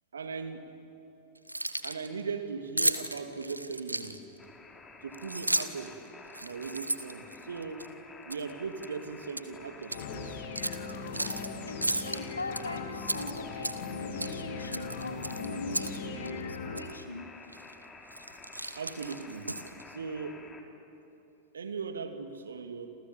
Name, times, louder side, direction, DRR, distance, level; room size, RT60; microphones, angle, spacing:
voice 1, 0.1-0.7 1.8-4.2 5.0-6.0 6.4-7.9 8.3-10.4 18.8-19.5 19.9-20.5 21.5-22.9, right 5 dB, 70° right, 8 dB, 2.3 m, -38 dB
Keys jangling, 1.4-2.1 2.8-4.4 5.1-5.9 6.3-7.9 8.3-8.5 8.8-9.5 9.8-10.0 10.5-11.5 11.8-12.6 13.0-13.9 14.2-14.4 14.7-16.0 16.2-16.3 16.7-16.9 17.5-17.7 18.1-19.8, right 1 dB, 85° right, 1.2 m, -33 dB
sound 1, 4.4-20.6, left 3 dB, 15° left, 3.3 m, -51 dB
sound 2, 9.9-16.8, left 5 dB, 55° left, 2.7 m, -39 dB
voice 2, 11.7-17.3, left 2 dB, 80° left, 7 dB, 2.4 m, -41 dB
29.0 x 27.5 x 7.3 m, 3.0 s
figure-of-eight pair, 90°, 0 cm